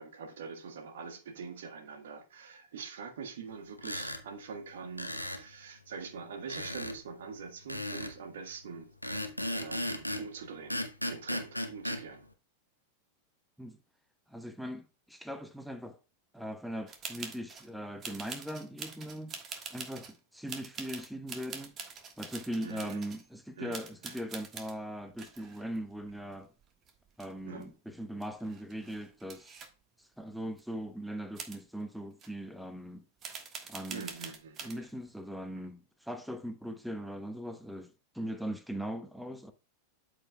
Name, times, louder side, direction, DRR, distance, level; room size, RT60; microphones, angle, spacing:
voice 1, 0.0-8.9 9.5-10.8 11.1-12.3 22.6-23.0 23.6-24.1 27.5-27.7 33.9-34.7, right 5 dB, 60° right, 1.4 m, -44 dB
sound 1, 3.8-4.2 5.0-5.4 6.5-7.0 7.7-8.2 9.0-10.3 10.7-12.0, left 1 dB, 90° left, 1.0 m, -35 dB
voice 2, 14.3-16.0 16.3-19.3 19.7-21.7 22.2-26.5 27.2-29.6 30.0-33.0 33.7-34.1 34.6-39.5, equal, ahead, 0.8 m, -40 dB
sound 2, 16.9-17.7 18.0-20.2 20.5-23.3 23.7-24.8 25.2-26.6 26.9-27.6 27.9-28.0 28.2-29.7 30.6-30.7 31.4-31.6 32.2-32.3 33.2-34.8, right 6 dB, 30° right, 1.4 m, -45 dB
13.0 x 5.1 x 2.2 m
figure-of-eight pair, 90°, 0 cm